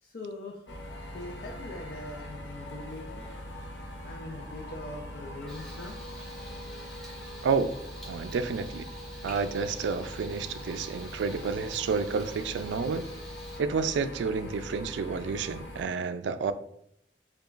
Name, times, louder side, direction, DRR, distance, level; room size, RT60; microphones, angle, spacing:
voice 1, 0.0-0.7 1.1-3.3 4.0-6.0, left 2 dB, 55° left, -1 dB, 0.5 m, -42 dB
sound 1, 0.7-15.8, equal, 80° left, 0.8 m, -42 dB
Frying (food), 5.5-13.6, equal, ahead, 1.4 m, -49 dB
voice 2, 8.1-8.9 9.2-13.1 13.6-16.5, right 5 dB, 85° right, 12 dB, 0.3 m, -30 dB
6.7 x 2.3 x 2.4 m, 0.71 s
head